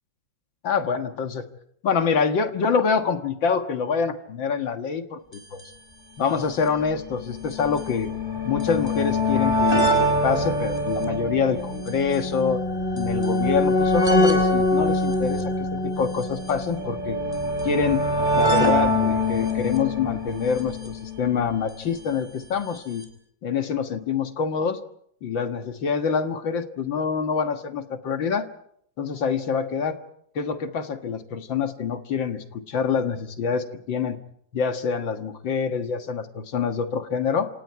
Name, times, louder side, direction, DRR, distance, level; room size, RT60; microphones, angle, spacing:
voice 1, 0.6-1.5 1.8-5.6 6.2-8.1 8.5-12.6 12.9-17.2 17.6-18.0 18.3-23.0 23.4-24.8 25.2-28.5 29.0-30.0 30.4-34.2 34.5-37.5, left 6 dB, 75° left, 7 dB, 2.3 m, -26 dB
sound 1, 5.3-5.4 5.6-5.7 6.5-21.8 22.8-22.9 23.0-23.1, left 1 dB, 10° left, 4.6 m, -24 dB
28.0 x 27.0 x 4.7 m, 0.70 s
omnidirectional pair, 2.1 m